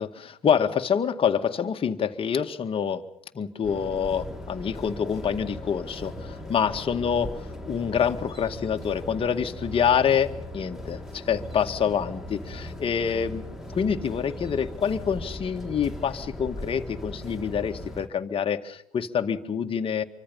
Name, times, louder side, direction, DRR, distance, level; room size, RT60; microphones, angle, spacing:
voice 1, 0.0-3.0 3.3-13.5 13.7-20.0, left 7 dB, 30° left, 6 dB, 2.0 m, -26 dB
sound 1, 3.6-18.1, left 1 dB, ahead, 3.0 m, -38 dB
27.5 x 24.5 x 5.7 m, 0.69 s
hypercardioid pair, 75°, 19 cm